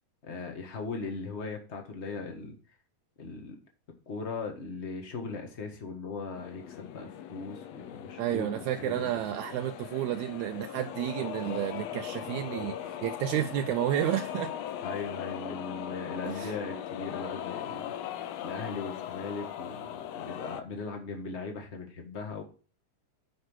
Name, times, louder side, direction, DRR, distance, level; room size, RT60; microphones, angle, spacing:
voice 1, 0.2-2.6 3.2-3.6 4.1-9.1 14.8-17.9 18.4-22.4, left 4 dB, 65° left, 0.6 m, -38 dB
sound 1, 6.4-20.6, left 11 dB, 85° left, 1.5 m, -39 dB
voice 2, 8.2-14.5 16.2-16.5, right 12 dB, 80° right, 1.7 m, -31 dB
9.2 x 5.2 x 6.2 m
omnidirectional pair, 3.9 m